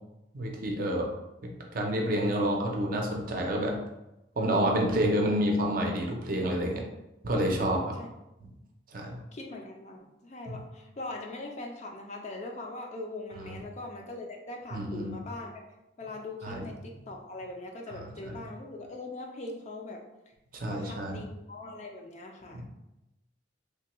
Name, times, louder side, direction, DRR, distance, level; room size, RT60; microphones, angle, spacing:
voice 1, 0.3-1.1 1.4-3.8 4.4-6.8 7.2-7.9 8.9-9.2 14.7-15.1 16.4-16.6 18.0-18.4 20.5-21.2 22.5-22.6, equal, 50° right, 0 dB, 0.5 m, -29 dB
voice 2, 7.7-8.1 9.3-15.6 16.0-20.0 20.7-22.6, left 2 dB, 35° left, 1 dB, 0.4 m, -41 dB
3.3 x 2.2 x 2.9 m, 0.93 s
head